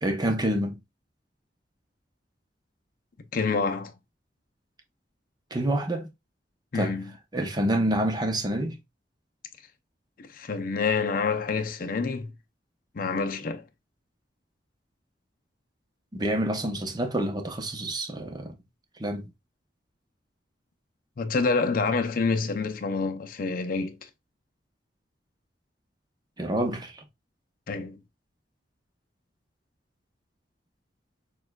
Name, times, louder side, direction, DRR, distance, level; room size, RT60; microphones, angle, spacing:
voice 1, 0.0-0.8 5.5-6.1 6.7-7.0 7.3-8.8 16.1-18.6 19.0-19.3 26.4-27.0, right 1 dB, 25° right, 0.7 m, -27 dB
voice 2, 3.3-3.9 6.7-7.1 10.2-12.3 12.9-13.6 21.2-24.0 27.7-28.0, left 4 dB, 50° left, 0.5 m, -27 dB
6.5 x 2.4 x 2.3 m
head